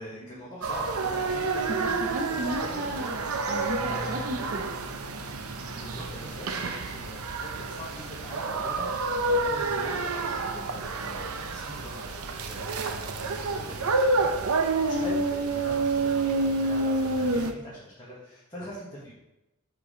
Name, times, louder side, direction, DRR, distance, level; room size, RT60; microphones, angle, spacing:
voice 1, 0.0-2.9 5.7-19.1, left 1 dB, 20° left, -7 dB, 1.4 m, -43 dB
sound 1, 0.6-17.5, right 3 dB, 75° right, 0.7 m, -29 dB
voice 2, 1.8-4.7, right 1 dB, 40° right, 1 dB, 0.5 m, -35 dB
5.4 x 4.8 x 5.0 m, 0.92 s
head